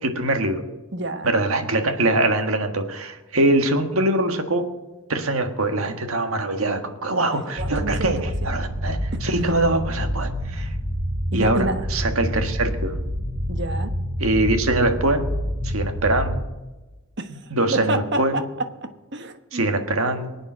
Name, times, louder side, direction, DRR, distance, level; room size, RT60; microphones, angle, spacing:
voice 1, 0.0-0.6 1.2-4.7 5.1-10.7 11.3-13.0 14.2-15.2 15.6-16.4 17.5-18.4 19.5-20.3, right 2 dB, 80° right, 6 dB, 1.7 m, -23 dB
voice 2, 0.9-1.3 7.3-8.5 11.3-11.8 13.5-13.9 17.2-17.3 17.7-19.6, right 1 dB, 55° right, 8 dB, 1.2 m, -29 dB
sound 1, 7.6-16.4, equal, 35° right, 4.1 m, -27 dB
23.0 x 8.9 x 6.3 m, 1.1 s
head